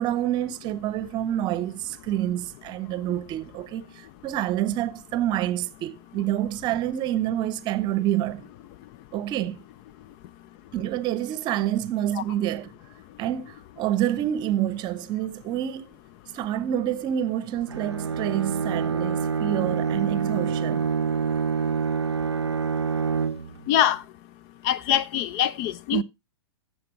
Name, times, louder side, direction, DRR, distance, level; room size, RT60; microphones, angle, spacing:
voice 1, 0.0-8.4 9.1-9.6 10.7-12.7 13.2-15.9 16.3-20.9 25.9-26.0, right 12 dB, 30° right, 0.8 m, -27 dB
Bowed string instrument, 17.7-23.7, right 6 dB, 85° right, 0.5 m, -26 dB
voice 2, 23.7-24.0 24.6-26.0, left 11 dB, 40° left, 0.4 m, -23 dB
15.5 x 7.0 x 3.1 m
figure-of-eight pair, 100°, 14 cm